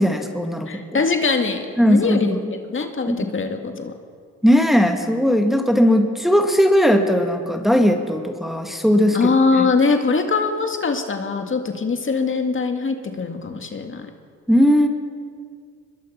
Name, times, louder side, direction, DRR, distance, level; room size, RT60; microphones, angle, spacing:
voice 1, 0.0-1.0 1.8-2.4 3.1-3.2 4.4-9.3 14.5-14.9, equal, ahead, 4 dB, 1.9 m, -18 dB
voice 2, 0.7-3.9 9.1-14.1, left 4 dB, 40° left, 5 dB, 2.2 m, -22 dB
23.0 x 21.5 x 5.8 m, 2.1 s
cardioid pair, 80°, 32 cm